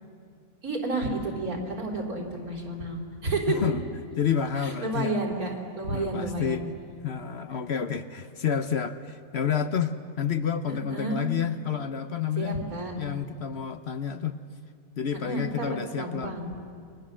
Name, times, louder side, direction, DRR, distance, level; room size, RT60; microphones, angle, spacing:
voice 1, 0.6-3.5 4.6-6.6 10.7-11.2 12.4-12.9 15.2-16.5, right 2 dB, 85° right, 0 dB, 4.3 m, -31 dB
voice 2, 3.5-3.8 4.2-5.1 5.9-6.7 7.0-12.7 13.0-14.4 15.0-16.4, left 7 dB, 55° left, 10 dB, 1.0 m, -29 dB
28.5 x 22.0 x 7.4 m, 2.3 s
omnidirectional pair, 1.5 m